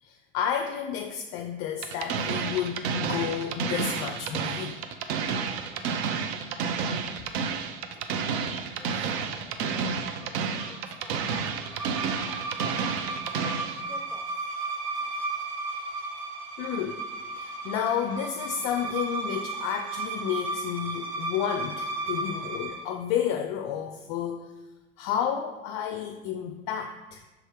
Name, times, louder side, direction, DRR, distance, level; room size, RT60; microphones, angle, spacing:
voice 1, 0.0-4.8 9.7-9.8 10.2-10.4 16.6-17.0 17.4-24.5 25.0-27.2, left 9 dB, 40° left, 5 dB, 0.4 m, -31 dB
sound 1, 1.8-13.8, right 6 dB, 55° right, 0.6 m, -30 dB
voice 2, 8.8-9.7 10.4-12.4 12.8-13.3 13.6-14.3, left 3 dB, 5° left, 4 dB, 0.7 m, -52 dB
sound 2, 10.2-22.9, right 3 dB, 35° right, 1.3 m, -35 dB
5.6 x 3.8 x 4.4 m, 1.1 s
figure-of-eight pair, 80°, 38 cm